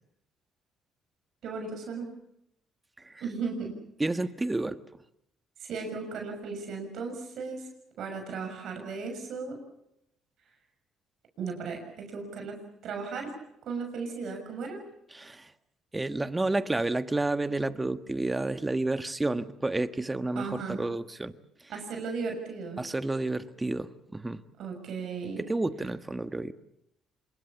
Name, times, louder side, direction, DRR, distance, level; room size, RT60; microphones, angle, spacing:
voice 1, 1.4-2.1 3.2-3.7 5.6-7.7 8.0-9.6 11.4-13.3 13.6-14.8 20.3-20.8 21.7-22.8 24.6-25.4, right 4 dB, 65° right, 4 dB, 6.3 m, -36 dB
voice 2, 4.0-4.8 15.1-15.5 15.9-21.3 22.8-24.4 25.4-26.5, right 2 dB, 15° right, 11 dB, 1.4 m, -30 dB
26.0 x 21.5 x 7.2 m, 0.78 s
supercardioid pair, 75°, 0 cm